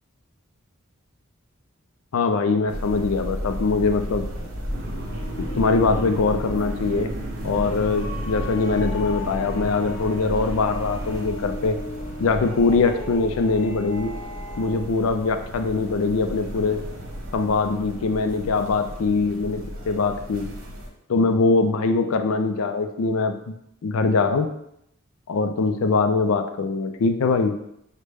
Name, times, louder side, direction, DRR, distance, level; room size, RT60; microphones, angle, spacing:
voice 1, 2.1-4.3 5.6-7.1 7.4-11.8 12.2-14.1 14.6-16.8 17.3-20.5 21.1-23.5 23.8-24.5 25.3-27.5, left 4 dB, 75° left, 7 dB, 0.4 m, -22 dB
sound 1, 2.7-20.9, equal, 65° right, 1.0 m, -34 dB
sound 2, 4.4-14.9, left 1 dB, 25° left, 0.6 m, -38 dB
sound 3, 4.7-11.3, right 1 dB, 45° right, 0.5 m, -37 dB
6.4 x 2.1 x 3.3 m, 0.77 s
head